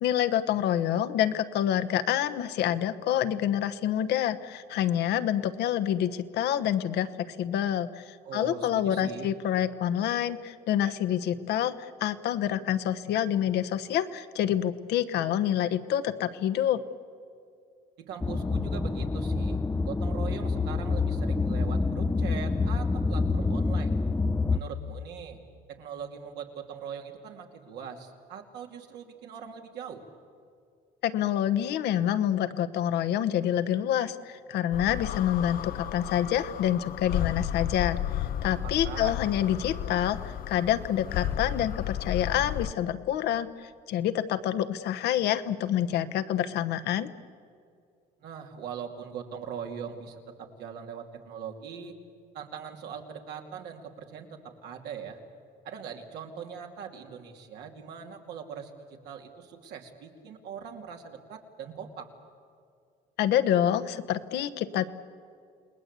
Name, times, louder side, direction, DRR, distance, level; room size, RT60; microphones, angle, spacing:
voice 1, 0.0-16.8 31.0-47.1 63.2-64.8, left 10 dB, 75° left, 11 dB, 1.1 m, -27 dB
voice 2, 8.2-9.3 18.0-19.6 19.8-23.9 24.5-25.4 25.7-30.0 38.6-39.2 48.2-52.0 52.3-55.2 55.6-62.1, right 7 dB, 80° right, 2 dB, 2.7 m, -41 dB
sound 1, 18.2-24.6, left 3 dB, 15° left, 0.6 m, -27 dB
sound 2, 34.7-42.7, left 11 dB, 60° left, 0.6 m, -33 dB
29.0 x 19.5 x 8.2 m, 2.3 s
cardioid pair, 110°, 17 cm